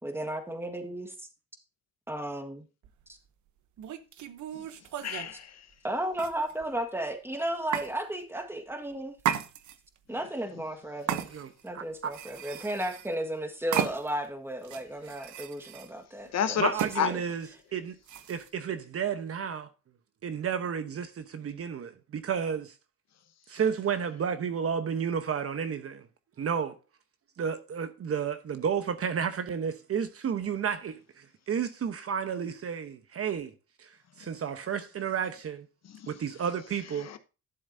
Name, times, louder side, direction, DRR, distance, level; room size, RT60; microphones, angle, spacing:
voice 1, 0.0-1.3 2.1-2.6 3.1-3.2 5.8-9.1 10.1-11.3 11.6-17.2, right 1 dB, 10° right, 1.7 m, -34 dB
sound 1, 2.8-3.0 3.8-5.3 6.1-6.8 7.7-7.9 9.2-10.0 11.1-11.7 12.0-13.1 13.7-14.3 14.6-15.9 16.8-17.0 18.1-18.5, right 10 dB, 75° right, 0.9 m, -34 dB
voice 2, 5.0-5.7 16.3-16.7 16.9-17.1 35.8-36.1 37.0-37.2, left 9 dB, 60° left, 1.0 m, -30 dB
voice 3, 11.7-12.1 16.6-17.5 17.7-18.0 18.3-19.7 20.2-22.7 23.5-26.1 26.4-26.7 27.4-33.5 33.8-33.9 34.2-35.7 36.1-37.1, right 7 dB, 50° right, 1.0 m, -32 dB
12.0 x 7.2 x 2.7 m
cardioid pair, 90°, 30 cm